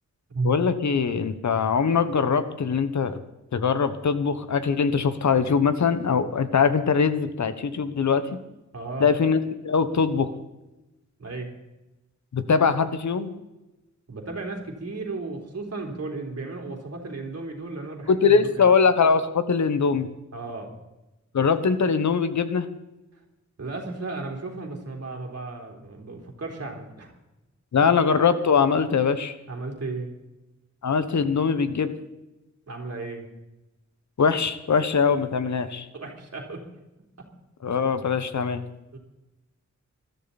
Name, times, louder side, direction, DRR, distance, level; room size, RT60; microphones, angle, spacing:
voice 1, 0.4-3.2 3.5-8.4 9.0-10.3 12.3-13.3 18.1-20.1 21.3-22.7 27.7-29.3 30.8-31.9 34.2-35.9 37.6-38.6, left 5 dB, 75° left, 11 dB, 1.3 m, -22 dB
voice 2, 8.7-9.1 11.2-11.5 14.1-18.7 20.3-20.7 23.6-27.1 29.5-30.1 32.7-33.3 35.9-36.6 38.9-39.0, right 3 dB, 55° right, 1 dB, 3.6 m, -34 dB
21.0 x 13.5 x 4.2 m, 0.99 s
wide cardioid pair, 145°, 29 cm